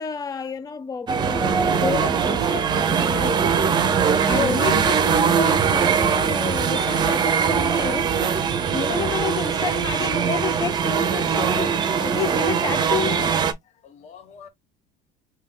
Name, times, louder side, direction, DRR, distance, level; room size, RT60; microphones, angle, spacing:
voice 1, 0.0-3.5 4.3-8.1 8.7-13.5, left 6 dB, 20° left, 0.5 m, -30 dB
sound 1, 1.1-13.5, right 6 dB, 25° right, 0.7 m, -21 dB
voice 2, 4.3-4.9 13.8-14.5, left 2 dB, 40° left, 1.5 m, -34 dB
3.6 x 2.9 x 3.6 m
cardioid pair, 155°, 17 cm